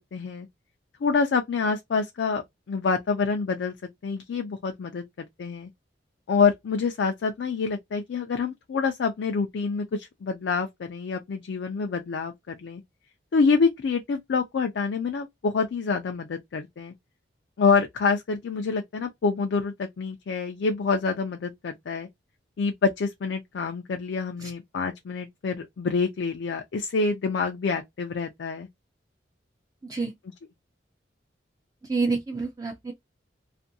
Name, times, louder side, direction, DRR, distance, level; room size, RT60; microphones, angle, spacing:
voice 1, 0.1-0.5 1.0-2.4 2.7-3.7 4.0-5.7 6.3-12.8 13.3-16.9 17.6-22.1 22.6-28.7 30.3-30.4, left 5 dB, 75° left, 0.4 m, -27 dB
voice 2, 31.9-32.9, right 4 dB, 20° right, 0.3 m, -27 dB
2.6 x 2.5 x 2.6 m
head